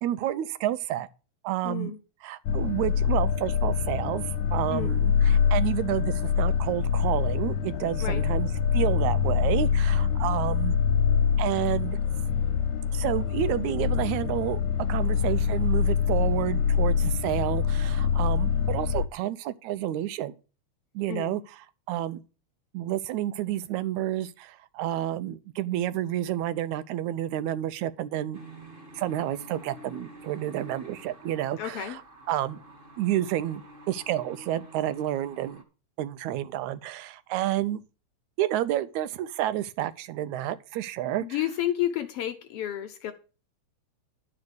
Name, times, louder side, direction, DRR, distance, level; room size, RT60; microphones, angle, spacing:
voice 1, 0.0-1.1 1.4-1.9 2.2-4.2 4.5-10.8 11.4-12.0 12.9-14.6 14.9-20.4 21.0-22.2 22.7-28.4 29.0-32.6 33.0-35.6 36.0-37.8 38.4-41.6, right 13 dB, 80° right, 2.1 m, -30 dB
voice 2, 1.6-2.0 4.7-4.9 8.0-8.2 21.1-21.4 31.6-32.0 41.2-43.1, left 11 dB, 65° left, 1.6 m, -31 dB
sound 1, 2.5-19.1, left 7 dB, 85° left, 2.1 m, -25 dB
sound 2, 28.3-35.6, right 1 dB, 20° right, 1.5 m, -48 dB
11.0 x 5.0 x 7.8 m
omnidirectional pair, 3.3 m